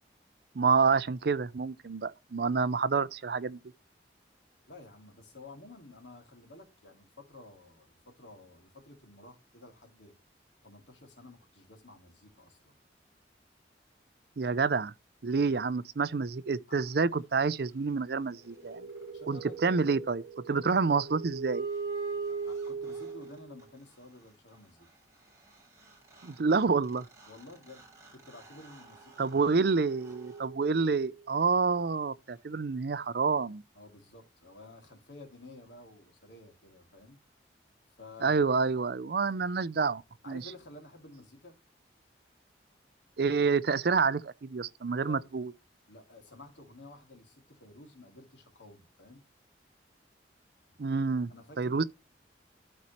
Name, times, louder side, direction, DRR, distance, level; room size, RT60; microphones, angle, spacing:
voice 1, 0.6-3.6 14.4-14.9 15.2-18.8 19.3-21.7 26.2-27.1 29.2-33.6 38.2-40.0 40.3-40.4 43.2-45.5 50.8-51.3 51.6-51.8, right 4 dB, 60° right, 0.5 m, -28 dB
voice 2, 4.7-10.2 10.6-12.7 15.3-15.7 16.7-17.0 19.1-19.6 22.3-24.9 27.3-27.9 28.1-29.5 33.7-37.2 38.0-38.6 40.2-41.6 45.0-45.3 45.9-49.2 51.3-51.9, left 2 dB, 85° left, 2.7 m, -52 dB
sound 1, 18.3-23.6 25.5-25.6 25.8-31.3, right 4 dB, 15° right, 3.2 m, -41 dB
12.5 x 4.2 x 3.1 m
head